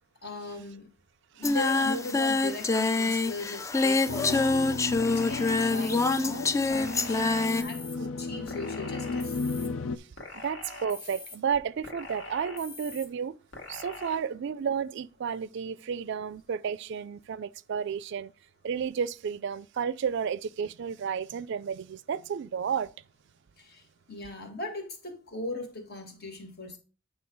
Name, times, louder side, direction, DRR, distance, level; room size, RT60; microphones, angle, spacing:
voice 1, 0.2-0.9 1.3-7.3 7.5-9.4 23.6-23.8 24.1-26.8, left 2 dB, 55° left, 1.8 m, -38 dB
Singing, 1.4-7.6, left 3 dB, 15° left, 0.3 m, -26 dB
sound 1, 3.7-4.4 5.0-6.2 6.7-8.0 8.5-9.7 10.2-11.4 11.8-13.1 13.5-14.2, left 3 dB, 70° left, 2.0 m, -43 dB
sound 2, 4.1-10.0, left 3 dB, 85° left, 0.5 m, -34 dB
voice 2, 10.4-13.4 13.7-18.3 18.6-22.9, right 7 dB, 65° right, 0.4 m, -32 dB
8.9 x 3.3 x 4.6 m
head